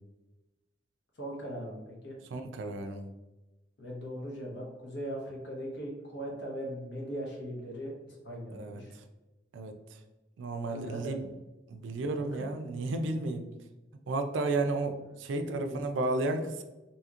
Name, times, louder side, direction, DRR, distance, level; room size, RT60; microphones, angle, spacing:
voice 1, 1.2-2.2 3.8-8.9 10.7-11.2 11.9-12.3 15.4-15.8, equal, 70° left, -1 dB, 0.8 m, -39 dB
voice 2, 2.3-3.1 8.5-8.8 9.5-10.0 10.4-11.3 11.7-13.5 14.1-16.6, right 2 dB, 85° right, 7 dB, 0.4 m, -33 dB
2.8 x 2.7 x 2.4 m, 1.1 s
head